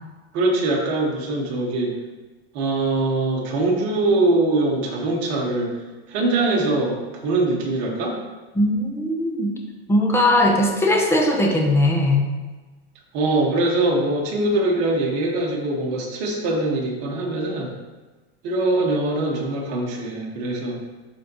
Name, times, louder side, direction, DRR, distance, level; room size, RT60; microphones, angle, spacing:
voice 1, 0.3-1.9 2.5-5.7 6.1-8.2 13.1-17.7 18.4-20.8, right 2 dB, 45° right, -2 dB, 1.8 m, -22 dB
voice 2, 8.5-9.5 9.9-12.2, left 1 dB, 10° left, 0 dB, 0.9 m, -19 dB
11.5 x 4.0 x 3.1 m, 1.2 s
supercardioid pair, 150°, 32 cm